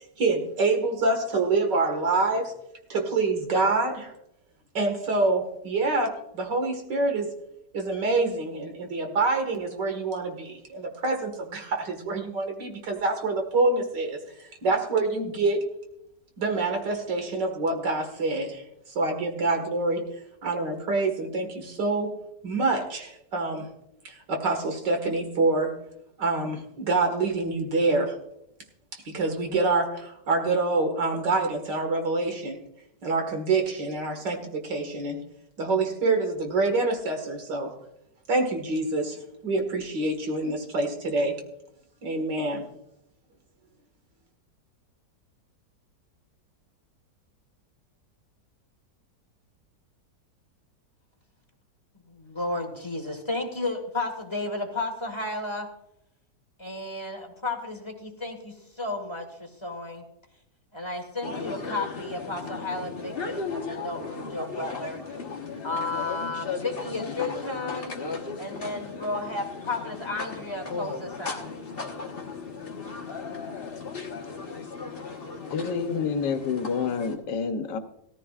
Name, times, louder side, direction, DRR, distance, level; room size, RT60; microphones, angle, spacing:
voice 1, 0.2-2.5 2.9-4.1 4.7-7.3 7.7-14.2 14.6-15.7 16.4-20.0 20.4-22.1 22.4-23.7 24.0-25.7 26.2-28.1 29.1-32.6 33.0-35.2 35.6-37.8 38.3-41.4 42.0-42.6, right 3 dB, 75° right, 4 dB, 2.4 m, -26 dB
voice 2, 52.1-55.7 56.6-60.0 60.7-65.0 65.6-67.9 68.4-71.5, left 2 dB, 15° left, 3 dB, 1.5 m, -33 dB
sound 1, 61.2-77.2, left 4 dB, 35° left, 1.4 m, -36 dB
voice 3, 75.5-77.8, left 5 dB, 75° left, 7 dB, 1.6 m, -28 dB
16.5 x 14.5 x 2.4 m, 0.79 s
omnidirectional pair, 1.9 m